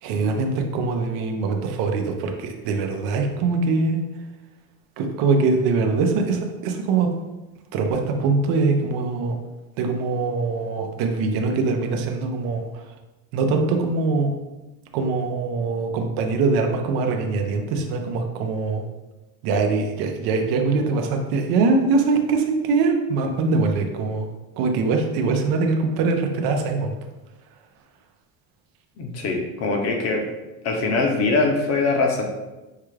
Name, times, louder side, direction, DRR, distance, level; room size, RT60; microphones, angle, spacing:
voice 1, 0.0-4.0 5.0-7.1 7.7-9.4 9.8-12.8 13.3-14.3 14.9-18.8 19.4-24.3 24.6-26.9, right 4 dB, 75° right, 4 dB, 0.7 m, -22 dB
voice 2, 29.0-30.3 30.6-32.2, left 3 dB, 40° left, 2 dB, 0.7 m, -22 dB
5.6 x 2.4 x 3.2 m, 1.1 s
cardioid pair, 175°, 38 cm